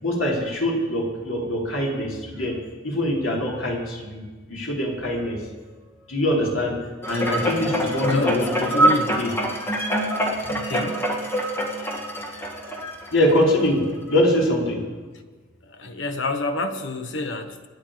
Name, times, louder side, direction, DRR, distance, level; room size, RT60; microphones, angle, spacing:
voice 1, 0.0-2.6 2.8-4.2 4.5-5.4 6.1-6.8 7.1-8.9 9.2-9.3 12.4-12.6 13.1-13.8 14.1-14.8, left 1 dB, 85° left, -2 dB, 3.8 m, -23 dB
sound 1, 7.0-13.6 14.1-14.2, equal, 10° left, 1.9 m, -25 dB
voice 2, 8.0-9.2 10.4-11.1 15.6-17.7, left 2 dB, 65° left, 7 dB, 1.3 m, -29 dB
25.5 x 10.0 x 5.1 m, 1.3 s
head